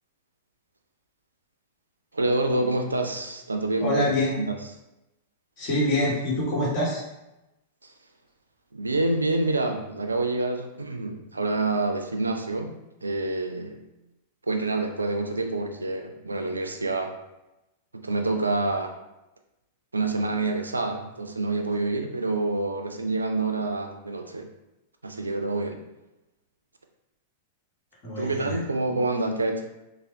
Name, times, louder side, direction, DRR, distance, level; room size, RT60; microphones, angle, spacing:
voice 1, 2.1-4.6 7.8-7.9 8.7-13.8 14.5-17.1 17.9-19.0 19.9-24.5 25.0-25.8 28.2-29.6, right 2 dB, 80° right, 4 dB, 0.3 m, -27 dB
voice 2, 3.8-4.3 5.6-7.0 28.0-28.6, left 1 dB, 35° left, -5 dB, 1.1 m, -25 dB
3.4 x 2.0 x 2.6 m, 0.95 s
figure-of-eight pair, 95°, 0 cm